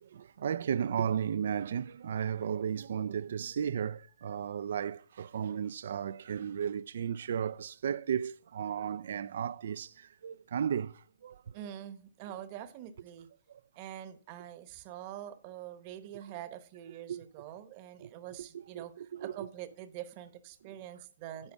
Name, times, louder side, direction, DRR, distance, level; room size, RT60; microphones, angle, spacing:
voice 1, 0.0-11.6 13.5-13.6 17.1-17.2 18.0-18.1 18.5-19.5, right 8 dB, 55° right, 0.4 m, -34 dB
voice 2, 11.5-13.3 13.8-18.9 19.2-21.5, right 11 dB, 30° right, 0.9 m, -45 dB
9.8 x 4.4 x 7.2 m
hypercardioid pair, 165°, 0 cm